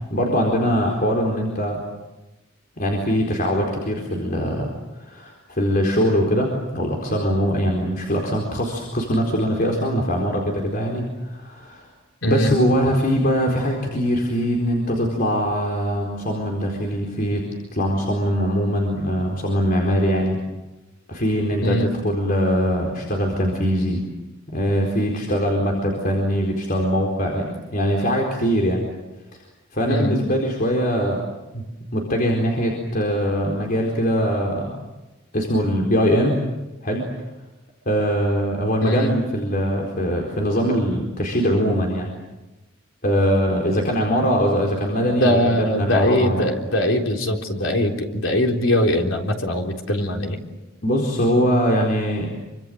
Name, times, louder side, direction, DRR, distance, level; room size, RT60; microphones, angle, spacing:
voice 1, 0.1-1.8 2.8-4.7 5.0-11.9 12.3-17.4 17.7-20.4 21.1-24.0 24.5-28.8 29.3-29.4 29.7-31.2 31.5-31.6 31.9-34.8 35.3-36.4 36.8-37.0 37.9-42.1 43.0-46.5 50.8-52.3, equal, 45° left, 0 dB, 4.4 m, -22 dB
voice 2, 12.2-12.5 21.6-21.9 29.9-30.2 38.8-39.1 45.0-50.4, left 1 dB, 80° left, 2 dB, 3.8 m, -21 dB
27.5 x 25.0 x 7.8 m, 1.0 s
head